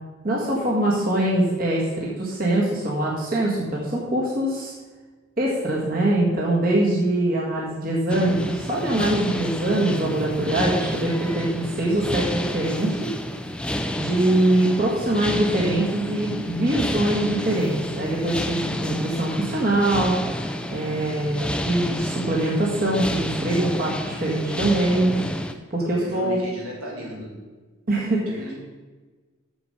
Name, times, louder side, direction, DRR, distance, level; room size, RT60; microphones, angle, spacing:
voice 1, 0.2-4.7 5.4-13.1 13.9-20.2 20.7-25.1 25.7-26.4 27.9-28.3, right 1 dB, 40° right, -4 dB, 1.6 m, -23 dB
sound 1, 8.1-25.5, left 1 dB, 5° left, 0.4 m, -30 dB
voice 2, 25.8-27.5 28.3-28.5, equal, 90° right, -4 dB, 3.4 m, -36 dB
7.2 x 7.0 x 6.5 m, 1.3 s
head